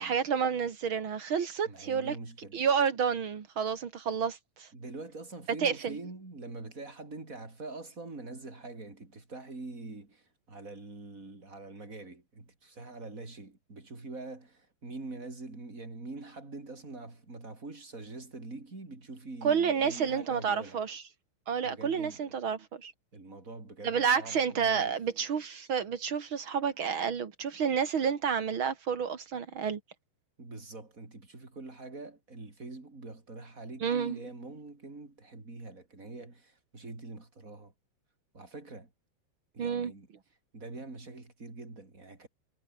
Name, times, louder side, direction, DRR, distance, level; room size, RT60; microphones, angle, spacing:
voice 1, 0.0-2.1 2.5-4.7 5.6-5.9 19.4-21.0 21.5-22.9 23.8-29.8 33.8-34.2 39.6-39.9, right 7 dB, 60° right, 1.3 m, -30 dB
voice 2, 1.6-2.6 4.7-20.8 21.6-22.4 23.1-25.0 30.4-37.7 38.3-38.9 39.5-40.1 40.5-42.3, right 3 dB, 15° right, 4.4 m, -44 dB
omnidirectional pair, 5.6 m